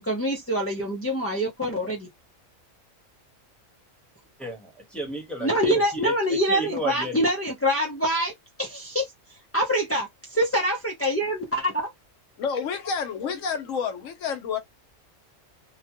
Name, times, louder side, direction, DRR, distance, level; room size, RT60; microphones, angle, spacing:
voice 1, 0.0-2.1 5.4-8.3 8.6-9.1 9.5-11.9, equal, 20° left, 0.4 m, -25 dB
voice 2, 4.4-7.2, right 2 dB, ahead, 1.0 m, -33 dB
voice 3, 12.4-14.6, left 6 dB, 75° left, 1.1 m, -29 dB
2.8 x 2.2 x 2.8 m
omnidirectional pair, 1.4 m